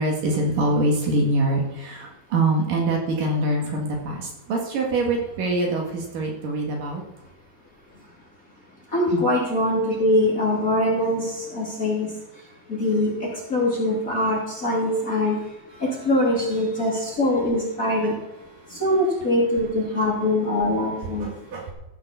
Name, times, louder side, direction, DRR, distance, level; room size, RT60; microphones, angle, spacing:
voice 1, 0.0-7.0 9.1-9.2 15.7-15.8 18.6-18.8 21.0-21.7, right 2 dB, 60° right, 0 dB, 3.3 m, -24 dB
voice 2, 8.9-12.1 12.7-13.1 13.5-15.4 15.8-18.2 18.7-21.3, left 1 dB, 25° left, -4 dB, 2.9 m, -22 dB
15.0 x 6.9 x 6.9 m, 0.96 s
omnidirectional pair, 4.5 m